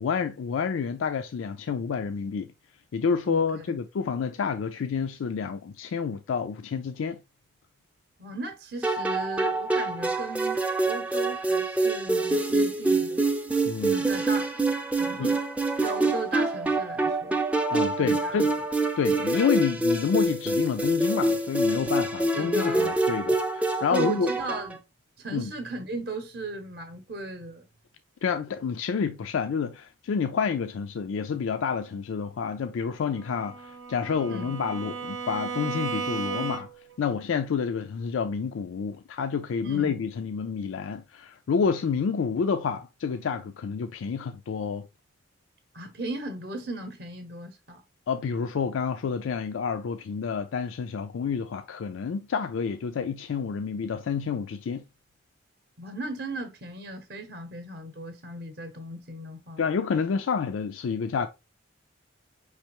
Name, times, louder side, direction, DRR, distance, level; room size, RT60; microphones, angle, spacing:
voice 1, 0.0-2.5 2.9-7.2 13.6-14.0 15.2-15.3 17.7-18.5 19.0-24.3 25.3-25.5 28.2-36.7 37.0-44.9 48.1-54.8 59.6-61.3, left 6 dB, 90° left, 0.4 m, -29 dB
voice 2, 8.2-13.2 13.9-14.6 15.0-15.4 15.8-17.4 18.0-18.5 22.3-23.0 23.9-24.8 25.2-27.7 34.2-34.6 39.6-40.0 45.7-47.8 55.8-59.7, right 1 dB, 50° right, 0.7 m, -36 dB
sound 1, 8.8-24.8, right 2 dB, 5° right, 0.3 m, -26 dB
Bowed string instrument, 33.1-37.0, right 5 dB, 90° right, 0.6 m, -35 dB
5.1 x 3.3 x 2.9 m
head